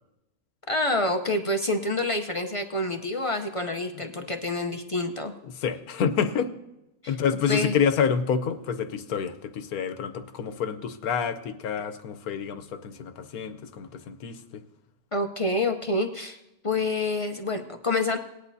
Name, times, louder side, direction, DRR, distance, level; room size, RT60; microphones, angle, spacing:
voice 1, 0.7-5.3 7.0-7.1 7.5-7.8 15.1-16.4 16.6-18.2, left 2 dB, 35° left, 5 dB, 0.5 m, -27 dB
voice 2, 5.5-6.5 7.1-14.6, left 7 dB, 80° left, 11 dB, 1.3 m, -28 dB
19.0 x 10.5 x 2.7 m, 0.95 s
omnidirectional pair, 1.5 m